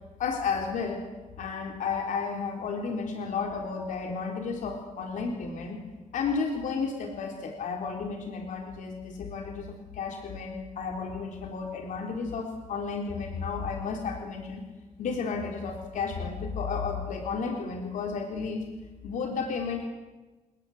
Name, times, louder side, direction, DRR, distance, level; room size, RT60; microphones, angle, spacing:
voice 1, 0.2-1.0 1.4-5.8 6.1-14.6 15.0-18.6 19.0-19.9, left 5 dB, 90° left, 2 dB, 3.8 m, -32 dB
29.5 x 19.5 x 8.0 m, 1.2 s
wide cardioid pair, 175°, 13 cm